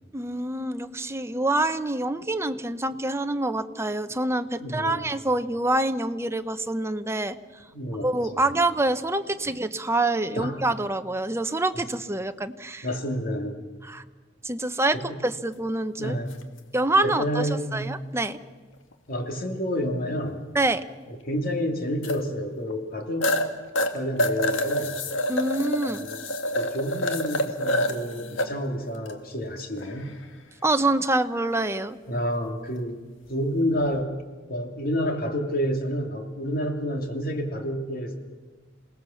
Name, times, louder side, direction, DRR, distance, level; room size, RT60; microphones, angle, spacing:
voice 1, 0.1-7.4 8.0-12.9 13.8-14.0 14.4-15.0 15.2-16.1 16.7-18.4 20.5-20.8 25.3-26.1 30.6-32.0, right 2 dB, 15° right, 9 dB, 0.9 m, -26 dB
voice 2, 4.6-5.1 7.7-8.4 10.4-10.6 12.8-13.6 14.9-15.1 16.0-16.4 17.0-18.0 19.1-20.4 21.1-23.3 23.9-25.0 26.0-26.2 26.6-30.1 32.1-33.0 33.3-34.1 34.5-38.2, equal, 50° left, 3 dB, 2.8 m, -29 dB
sound 1, 16.3-16.4 18.9-19.0 22.0-22.2 22.7-22.8 23.2-23.5 23.7-28.5 29.0-29.1 29.8-30.2 33.8-34.0, left 1 dB, 80° left, 1.9 m, -27 dB
27.5 x 18.5 x 7.2 m, 1.4 s
head